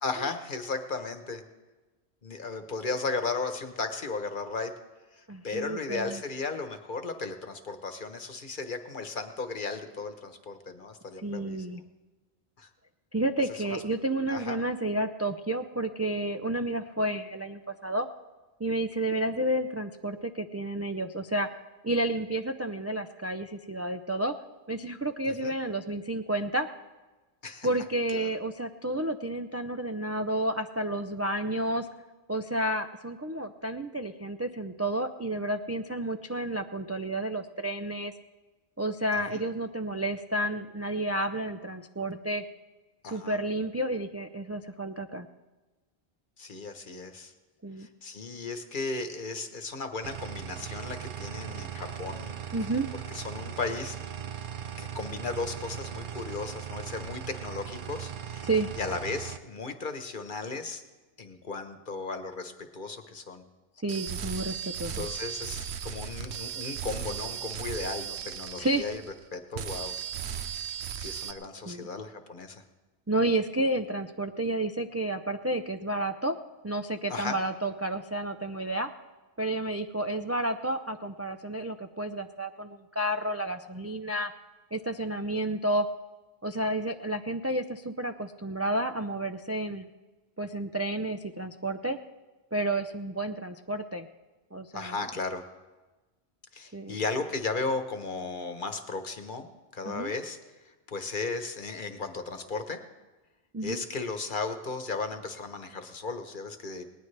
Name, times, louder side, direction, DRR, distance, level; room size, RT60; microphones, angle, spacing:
voice 1, 0.0-1.4 2.2-4.7 5.1-11.8 12.6-12.7 13.7-13.8 14.3-14.6 25.2-25.5 27.4-27.7 28.1-28.4 39.3-39.4 43.0-43.4 46.4-47.3 47.8-52.4 53.1-54.0 54.8-58.4 58.8-60.8 61.2-63.4 64.9-69.0 69.3-69.9 71.0-72.6 77.1-77.4 94.7-95.4 96.5-100.4 100.9-102.8 103.6-106.8, left 4 dB, 50° left, 7 dB, 1.2 m, -35 dB
voice 2, 5.3-6.2 11.2-11.8 13.1-18.1 18.6-21.5 21.8-24.4 24.7-26.7 27.6-31.9 32.3-38.1 38.8-42.4 43.0-45.3 47.6-47.9 52.5-52.9 58.4-58.7 63.8-65.1 68.5-68.8 71.5-71.9 73.1-76.4 76.6-78.9 79.4-84.3 84.7-85.9 86.4-89.9 90.4-92.0 92.5-94.1 94.5-94.9 96.7-97.0 99.9-100.1 103.5-103.8, right 1 dB, 25° right, 6 dB, 0.3 m, -31 dB
sound 1, 50.0-59.4, right 9 dB, 55° right, 0.8 m, -39 dB
sound 2, 63.9-69.2 69.5-71.3, right 8 dB, 85° right, 1.0 m, -36 dB
19.5 x 19.0 x 3.3 m, 1.2 s
omnidirectional pair, 1.1 m